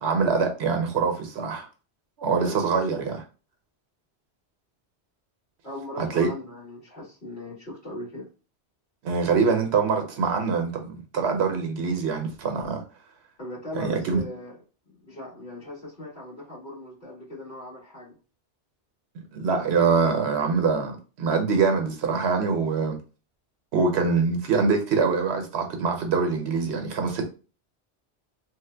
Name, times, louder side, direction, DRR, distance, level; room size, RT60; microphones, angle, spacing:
voice 1, 0.0-1.7 2.2-3.2 6.0-6.3 9.0-12.8 13.7-14.2 19.1-23.0 23.7-27.3, right 5 dB, 70° right, 0.9 m, -24 dB
voice 2, 2.2-2.6 5.6-8.3 13.4-14.5 14.9-18.2, left 1 dB, 45° left, 1.8 m, -39 dB
3.2 x 2.1 x 3.2 m
omnidirectional pair, 1.2 m